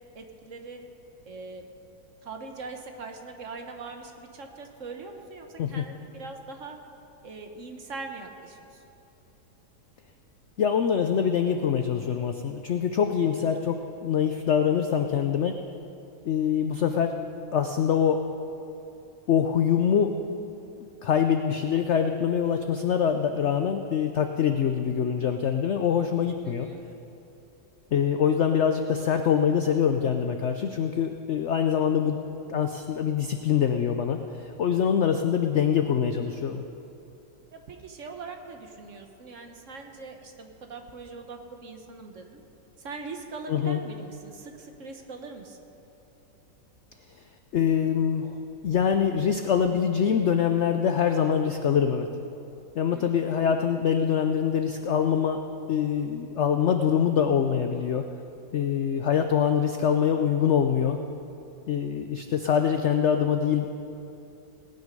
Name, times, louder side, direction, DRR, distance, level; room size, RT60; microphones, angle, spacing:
voice 1, 0.1-0.8 1.2-1.7 2.2-6.8 7.2-8.8 26.4-26.8 37.5-42.4 42.8-45.6 52.9-53.3, right 4 dB, 50° right, 4 dB, 1.2 m, -41 dB
voice 2, 10.6-15.6 16.2-17.2 17.5-18.2 19.3-20.1 20.8-26.7 27.9-32.2 32.5-36.6 43.5-43.8 47.5-48.4 48.6-52.1 52.8-55.4 55.7-58.0 58.5-61.0 61.7-63.7, left 8 dB, 75° left, 6 dB, 0.6 m, -24 dB
18.5 x 9.3 x 5.3 m, 2.8 s
omnidirectional pair, 1.8 m